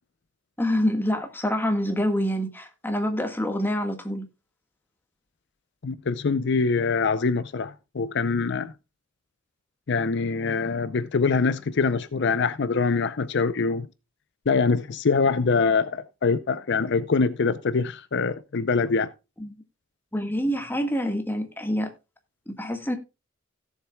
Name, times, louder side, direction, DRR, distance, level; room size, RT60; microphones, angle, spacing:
voice 1, 0.6-4.3 19.4-19.5 20.1-21.9 22.5-22.9, equal, 10° left, 1.6 m, -26 dB
voice 2, 5.8-8.7 9.9-13.9 14.5-19.1, left 4 dB, 65° left, 0.6 m, -24 dB
17.0 x 7.4 x 2.3 m
head